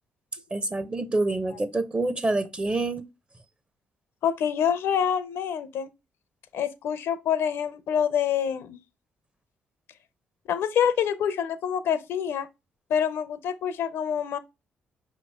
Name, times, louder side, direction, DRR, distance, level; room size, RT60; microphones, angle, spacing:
voice 1, 0.5-3.0, right 2 dB, 25° right, 0.6 m, -27 dB
voice 2, 4.2-5.9 6.5-8.8 10.5-12.5 12.9-14.4, left 8 dB, 75° left, 0.5 m, -26 dB
5.1 x 3.0 x 3.3 m
supercardioid pair, 55°, 4 cm